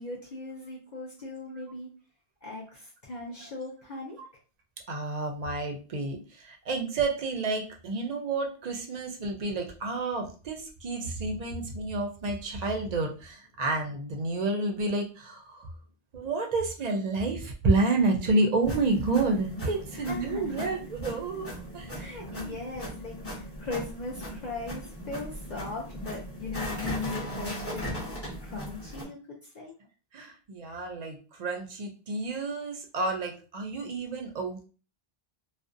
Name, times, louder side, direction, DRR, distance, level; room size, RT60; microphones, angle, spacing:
voice 1, 0.0-1.9 2.4-4.2 19.9-20.8 21.9-27.9 28.4-29.2 29.4-29.7, left 3 dB, 55° left, -2 dB, 0.6 m, -38 dB
voice 2, 4.9-15.7 16.1-22.1 22.4-22.6 30.1-34.6, right 3 dB, 55° right, 3 dB, 0.5 m, -30 dB
sound 1, 18.6-29.0, equal, 15° left, 0.7 m, -38 dB
2.5 x 2.1 x 2.5 m, 0.36 s
omnidirectional pair, 1.0 m